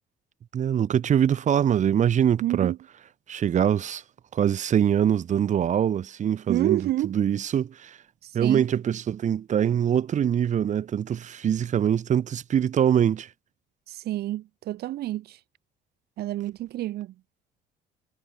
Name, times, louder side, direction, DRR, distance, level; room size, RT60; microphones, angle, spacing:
voice 1, 0.5-2.7 3.3-4.0 4.3-8.0 8.3-13.3, right 9 dB, 45° right, 1.5 m, -23 dB
voice 2, 2.4-2.8 6.5-7.1 8.2-8.7 13.9-15.4 16.2-17.1, right 15 dB, 70° right, 1.3 m, -29 dB
cardioid pair, 110°, 17 cm